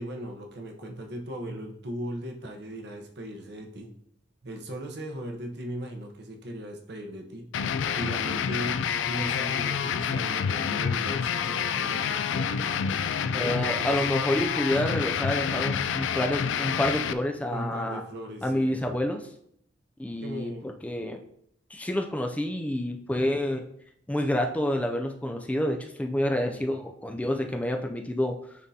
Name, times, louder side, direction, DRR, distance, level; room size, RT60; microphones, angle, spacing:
voice 1, 0.0-3.9 4.4-7.4 7.9-8.8 9.1-12.8 13.2-13.9 17.5-18.8 20.2-20.7 26.4-26.7, equal, 65° right, 2 dB, 0.9 m, -38 dB
sound 1, 7.5-17.1, left 7 dB, 80° left, 0.3 m, -28 dB
voice 2, 13.3-18.0 18.4-19.3 20.0-21.2 21.7-23.6 24.1-28.4, left 1 dB, 10° left, 3 dB, 0.4 m, -28 dB
9.4 x 3.7 x 2.8 m, 0.72 s
head